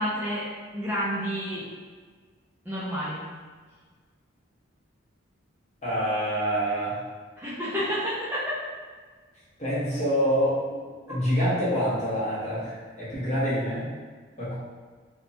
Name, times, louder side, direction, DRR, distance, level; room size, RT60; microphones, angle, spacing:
voice 1, 0.0-1.7 2.7-3.2 7.4-8.6, equal, 10° right, -10 dB, 0.3 m, -30 dB
voice 2, 5.8-7.0 9.6-10.8 11.1-13.9 14.4-14.5, equal, 35° left, -10 dB, 0.9 m, -26 dB
2.7 x 2.2 x 2.6 m, 1.5 s
head